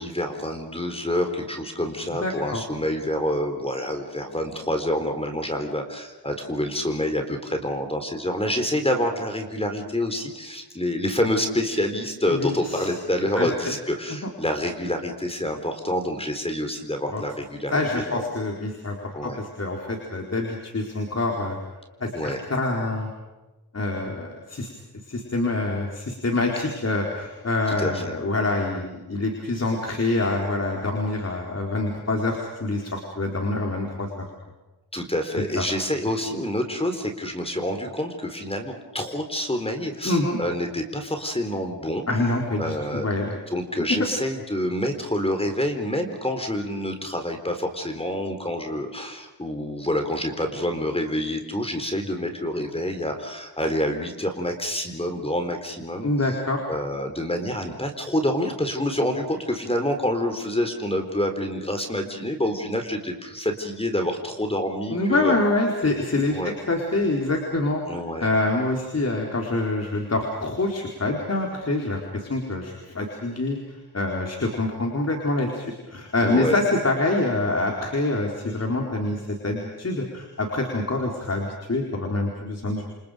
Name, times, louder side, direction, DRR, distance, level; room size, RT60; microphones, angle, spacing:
voice 1, 0.0-18.2 19.1-19.4 22.1-22.4 27.8-28.0 34.9-42.0 42.6-43.1 43.5-56.1 56.7-65.4 66.3-66.5 67.9-68.3 76.2-76.6, left 1 dB, 15° left, 5 dB, 4.2 m, -27 dB
voice 2, 2.2-2.6 12.3-12.9 13.4-13.7 14.2-14.3 17.1-17.2 17.7-19.0 19.2-21.6 22.0-23.1 23.7-24.7 25.1-34.1 35.3-35.6 40.0-40.4 42.1-43.4 56.0-56.6 64.9-67.8 68.2-82.8, left 2 dB, 40° left, 0 dB, 4.5 m, -26 dB
28.5 x 28.5 x 5.2 m, 1.1 s
wide cardioid pair, 90°, 40 cm